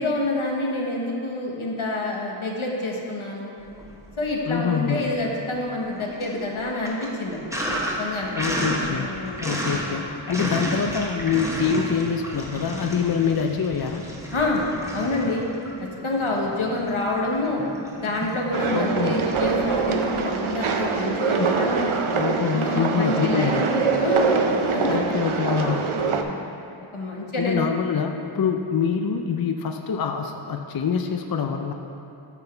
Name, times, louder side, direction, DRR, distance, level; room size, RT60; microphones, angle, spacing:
voice 1, 0.0-3.5 4.2-7.4 7.7-8.3 8.9-9.4 14.3-14.7 14.9-15.5 15.8-17.6 18.0-21.9 22.5-24.4 24.7-25.1 26.1-26.4 26.9-27.6 28.4-28.5, left 2 dB, 85° left, -1 dB, 1.1 m, -27 dB
Sink (filling or washing), 3.7-4.6 4.9-21.0, equal, 5° right, 1.1 m, -33 dB
voice 2, 4.5-5.0 8.4-9.1 9.4-14.0 18.7-19.2 21.4-21.5 22.1-23.7 24.9-25.9 27.4-31.7, left 6 dB, 50° left, 5 dB, 0.5 m, -25 dB
sound 1, 18.5-26.2, right 5 dB, 80° right, 0.6 m, -24 dB
9.0 x 5.9 x 4.4 m, 2.8 s
wide cardioid pair, 40°, 48 cm